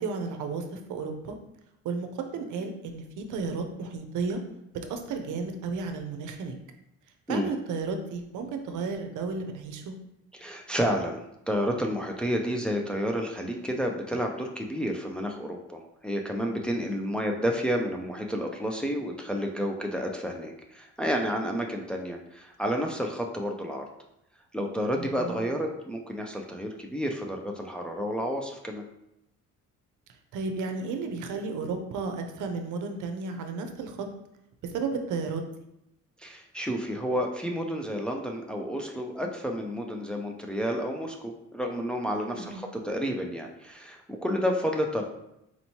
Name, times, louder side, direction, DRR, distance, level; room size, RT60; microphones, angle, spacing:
voice 1, 0.0-1.4 1.8-4.4 4.7-6.6 7.3-9.9 16.8-17.1 25.0-25.4 30.3-34.1 34.6-35.5 42.3-42.6, right 4 dB, 80° right, 6 dB, 0.6 m, -33 dB
voice 2, 10.3-23.9 24.5-28.8 36.2-45.0, equal, 5° left, 1 dB, 0.5 m, -30 dB
4.4 x 2.9 x 2.8 m, 0.83 s
cardioid pair, 90°, 30 cm